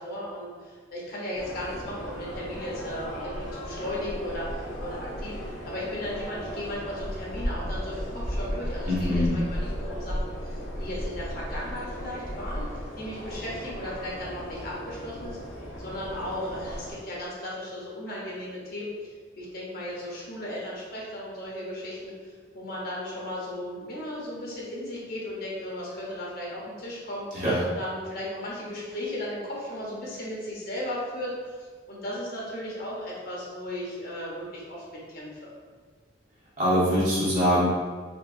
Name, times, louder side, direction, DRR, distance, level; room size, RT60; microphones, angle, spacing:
voice 1, 0.0-5.4 5.6-12.7 13.0-15.4 15.8-19.1 19.4-31.6 31.9-35.5, left 1 dB, 50° left, -5 dB, 1.0 m, -36 dB
sound 1, 1.3-16.9, equal, 85° left, 1.1 m, -35 dB
voice 2, 8.9-9.4 27.3-27.6 36.6-37.7, equal, 45° right, -9 dB, 1.4 m, -23 dB
4.5 x 2.6 x 2.6 m, 1.5 s
head